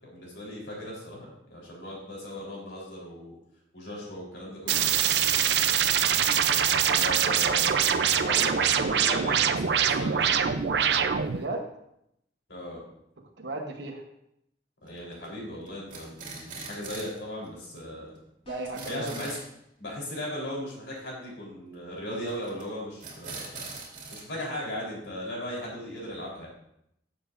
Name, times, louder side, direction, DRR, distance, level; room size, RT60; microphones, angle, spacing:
voice 1, 0.0-3.4 3.7-4.9 6.9-10.5 12.5-12.8 14.8-18.2 18.9-19.4 19.8-23.5 24.1-26.5, left 1 dB, 80° left, -3 dB, 3.8 m, -37 dB
sound 1, 4.7-11.4, right 8 dB, 70° right, 0.5 m, -24 dB
voice 2, 11.3-11.6 13.4-14.0 18.5-19.1, right 2 dB, 90° right, 2 dB, 1.0 m, -35 dB
sound 2, 14.9-15.3 15.7-17.2 17.5-17.6 17.8-17.9 18.2-18.3 18.5-19.5 22.3-22.6 23.0-24.2, right 3 dB, 50° right, 2.2 m, -41 dB
sound 3, 18.4-19.0, right 2 dB, 35° left, 2.9 m, -49 dB
13.5 x 7.0 x 2.6 m, 0.77 s
head